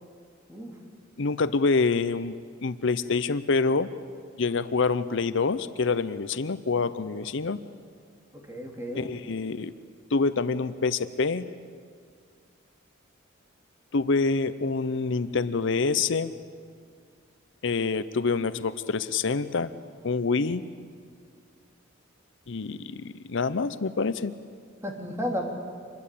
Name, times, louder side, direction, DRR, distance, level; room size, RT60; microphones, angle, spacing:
voice 1, 1.2-2.3 2.6-3.9 4.4-7.6 8.9-9.7 10.1-11.5 13.9-16.3 17.6-19.7 20.0-20.6 22.5-24.3, left 4 dB, 65° left, 13 dB, 0.7 m, -26 dB
voice 2, 8.3-9.1 24.8-25.4, equal, 15° right, 1 dB, 3.2 m, -33 dB
26.5 x 21.5 x 8.6 m, 2.1 s
head